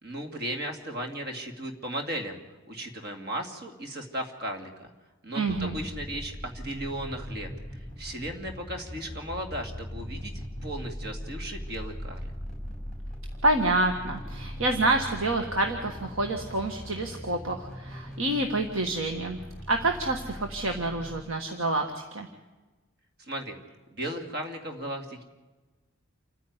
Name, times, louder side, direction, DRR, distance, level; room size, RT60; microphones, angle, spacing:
voice 1, 0.0-2.4 2.6-4.9 5.2-12.3 23.2-23.6 23.9-25.2, right 1 dB, 50° right, 4 dB, 2.6 m, -36 dB
voice 2, 5.3-5.8 13.4-19.4 19.7-22.3, right 2 dB, 70° right, 4 dB, 1.6 m, -27 dB
sound 1, 5.5-21.2, equal, 5° left, 4.2 m, -40 dB
28.5 x 10.0 x 9.7 m, 1.2 s
head